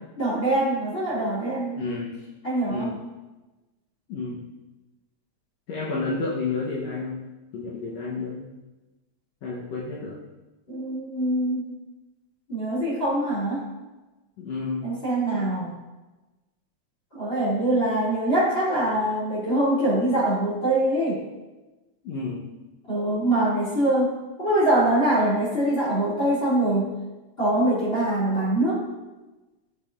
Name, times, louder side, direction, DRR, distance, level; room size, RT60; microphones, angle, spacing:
voice 1, 0.2-1.7 2.4-2.9 10.7-11.7 12.5-13.6 14.8-15.7 17.1-21.2 22.9-26.9 27.4-28.8, right 1 dB, 20° left, -8 dB, 2.3 m, -23 dB
voice 2, 1.8-2.2 2.7-3.0 4.1-4.4 5.7-7.2 7.5-8.5 9.4-10.2 14.4-14.8 22.0-22.4, left 3 dB, 70° left, -3 dB, 2.0 m, -30 dB
12.0 x 6.3 x 2.5 m, 1.1 s
omnidirectional pair, 3.4 m